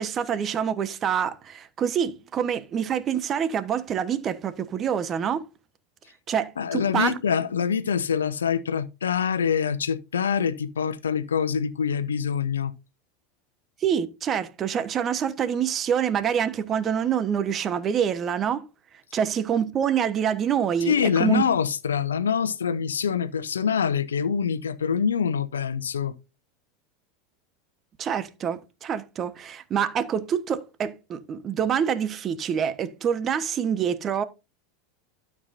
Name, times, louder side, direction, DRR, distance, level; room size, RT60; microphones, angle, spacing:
voice 1, 0.0-5.5 6.3-7.1 13.8-18.6 19.1-21.4 28.0-34.2, right 8 dB, 35° right, 1.2 m, -26 dB
voice 2, 6.6-12.7 20.9-26.1, left 7 dB, 75° left, 0.8 m, -25 dB
12.5 x 7.4 x 2.7 m
figure-of-eight pair, 80°, 0 cm